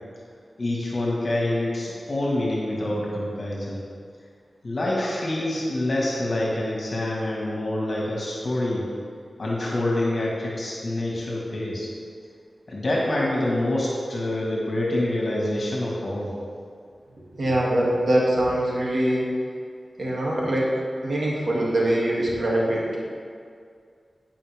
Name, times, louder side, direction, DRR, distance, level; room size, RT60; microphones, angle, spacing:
voice 1, 0.6-3.8 4.6-8.9 9.4-11.9 12.7-16.3, left 1 dB, 60° left, -4 dB, 2.0 m, -26 dB
voice 2, 17.4-19.2 20.0-20.7 21.0-22.8, right 1 dB, 65° right, -5 dB, 2.6 m, -23 dB
17.0 x 5.9 x 3.6 m, 2.2 s
wide cardioid pair, 65°, 0 cm